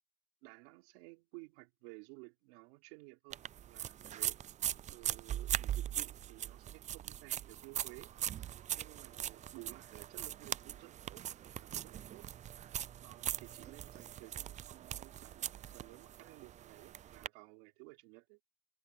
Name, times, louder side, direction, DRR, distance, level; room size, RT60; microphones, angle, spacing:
voice 1, 0.4-4.4 4.9-8.1 8.7-12.3 13.0-18.4, right 29 dB, 85° right, 4.3 m, -55 dB
sound 1, 3.3-17.3, right 11 dB, 25° right, 0.3 m, -41 dB
cardioid pair, 125°, 29 cm